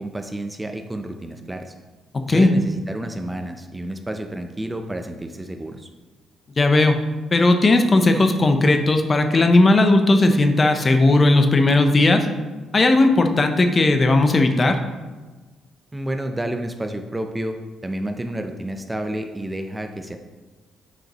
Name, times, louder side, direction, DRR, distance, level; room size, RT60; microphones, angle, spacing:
voice 1, 0.0-1.7 2.3-5.9 15.9-17.6 17.8-20.2, right 1 dB, 15° right, 6 dB, 0.5 m, -30 dB
voice 2, 6.6-7.0 7.3-12.3 12.7-14.8, left 2 dB, 30° left, 6 dB, 0.7 m, -16 dB
7.7 x 4.9 x 3.0 m, 1.2 s
cardioid pair, 90°, 0 cm